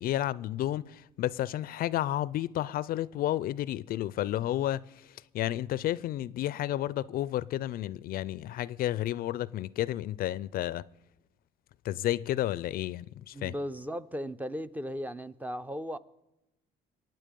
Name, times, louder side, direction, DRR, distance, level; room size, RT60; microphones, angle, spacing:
voice 1, 0.0-10.8 11.8-13.5, left 13 dB, 60° left, 0.4 m, -31 dB
voice 2, 13.3-16.0, equal, 10° right, 0.5 m, -36 dB
23.0 x 9.2 x 5.2 m
cardioid pair, 110°, 17 cm